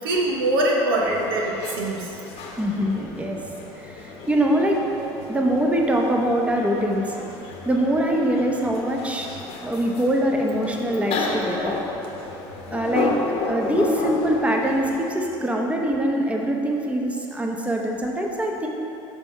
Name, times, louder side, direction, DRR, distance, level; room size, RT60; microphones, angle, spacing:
voice 1, 0.0-2.2 9.3-9.4, right 1 dB, 90° right, -2 dB, 0.9 m, -23 dB
sound 1, 1.0-15.1, left 3 dB, 55° left, 0.9 m, -33 dB
voice 2, 2.6-3.4 3.8-7.1 7.7-9.3 9.6-11.8 12.7-13.1 13.5-18.7, right 1 dB, 10° right, 0 dB, 0.8 m, -23 dB
6.3 x 3.5 x 5.4 m, 2.9 s
hypercardioid pair, 80°, 12 cm